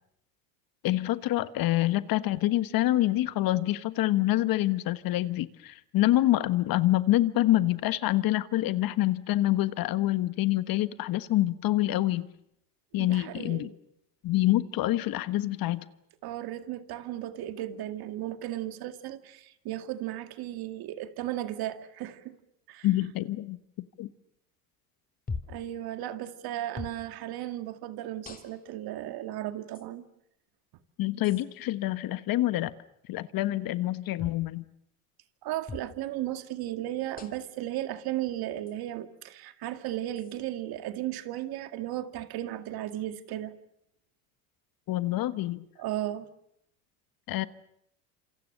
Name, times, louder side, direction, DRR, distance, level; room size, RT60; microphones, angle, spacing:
voice 1, 0.8-12.3 12.9-13.7 14.2-15.9 22.8-23.6 24.0-24.1 31.0-32.7 33.1-34.7 44.9-45.7 47.3-47.5, left 15 dB, 50° left, 1.4 m, -26 dB
voice 2, 13.0-13.7 16.2-22.4 22.7-22.9 25.5-30.0 35.4-43.5 45.8-46.3, right 13 dB, 55° right, 2.2 m, -35 dB
sound 1, 25.3-25.6 26.7-27.0 28.2-28.8 29.7-29.9 31.2-31.4 34.2-34.4 35.7-35.9 37.2-37.5 38.7-38.8 40.2-40.4, left 4 dB, 20° left, 3.2 m, -40 dB
27.5 x 27.0 x 6.7 m
supercardioid pair, 95°, 44 cm